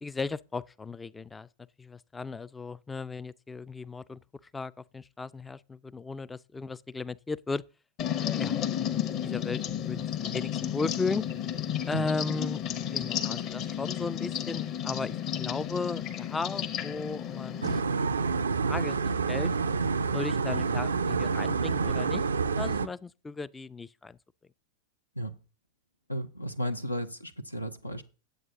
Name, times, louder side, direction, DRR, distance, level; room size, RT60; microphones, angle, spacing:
voice 1, 0.0-1.5 1.8-4.2 4.5-7.6 8.2-8.6 8.9-11.2 11.9-12.6 12.9-18.4 18.6-19.5 20.1-22.2 22.6-24.2, left 4 dB, 10° left, 0.3 m, -36 dB
sound 1, 8.0-17.8, left 10 dB, 40° left, 1.0 m, -32 dB
sound 2, 17.6-22.9, right 5 dB, 70° right, 0.4 m, -28 dB
voice 2, 26.1-28.0, equal, 85° left, 0.8 m, -34 dB
9.4 x 7.7 x 3.6 m
figure-of-eight pair, 90°, 0 cm